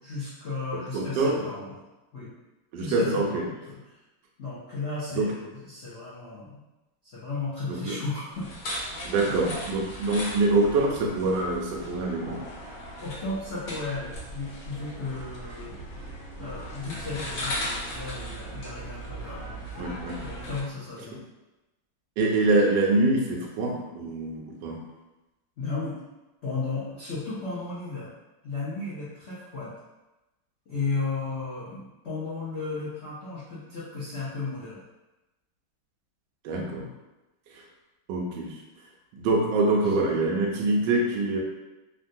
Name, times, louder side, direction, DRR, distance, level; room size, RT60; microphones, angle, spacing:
voice 1, 0.0-1.8 2.1-2.3 2.8-3.8 4.4-6.6 7.1-8.5 9.3-9.4 13.0-15.8 16.4-19.9 20.2-21.2 25.6-26.0 26.4-28.1 28.4-29.7 30.7-34.8 39.8-39.9, left 3 dB, 80° left, -11 dB, 0.6 m, -34 dB
voice 2, 0.9-1.4 2.7-3.4 5.1-5.3 7.7-7.9 9.0-12.4 19.8-20.2 22.2-24.8 36.4-36.9 38.1-38.5 39.1-41.4, right 2 dB, 70° right, -2 dB, 1.2 m, -25 dB
sound 1, 8.3-20.6, equal, 60° left, 0.9 m, -37 dB
3.5 x 2.2 x 2.6 m, 1.0 s
omnidirectional pair, 2.2 m